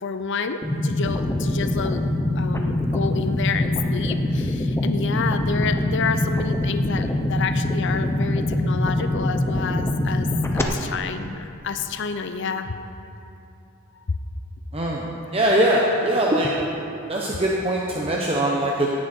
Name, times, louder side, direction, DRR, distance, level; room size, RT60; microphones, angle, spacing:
voice 1, 0.0-2.0 2.4-10.3 10.5-12.8, left 5 dB, 60° left, 9 dB, 0.6 m, -29 dB
sound 1, 0.6-10.6, left 1 dB, 10° left, 0.9 m, -23 dB
voice 2, 14.7-15.1 15.3-16.5 17.1-18.9, right 1 dB, 30° right, -2 dB, 1.0 m, -21 dB
16.5 x 10.5 x 4.5 m, 2.7 s
head